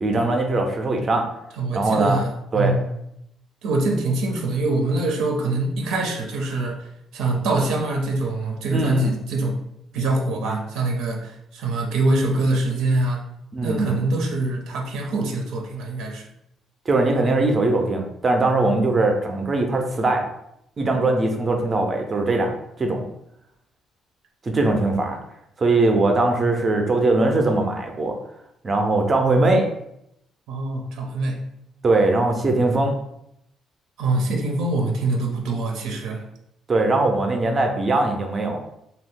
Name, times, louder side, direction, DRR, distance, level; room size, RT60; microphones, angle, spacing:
voice 1, 0.0-1.3 1.7-2.2 2.5-2.7 8.7-9.1 13.5-14.1 16.9-20.3 20.8-22.5 22.8-23.1 24.4-25.2 25.6-28.2 28.6-29.7 31.8-33.0 36.7-38.6, right 2 dB, 25° right, 3 dB, 0.4 m, -21 dB
voice 2, 1.6-2.9 3.6-6.9 7.1-9.6 9.9-13.2 13.6-16.3 30.5-31.4 34.0-36.2, right 2 dB, 85° right, 2 dB, 0.5 m, -24 dB
2.6 x 2.3 x 3.6 m, 0.79 s
cardioid pair, 175°, 0 cm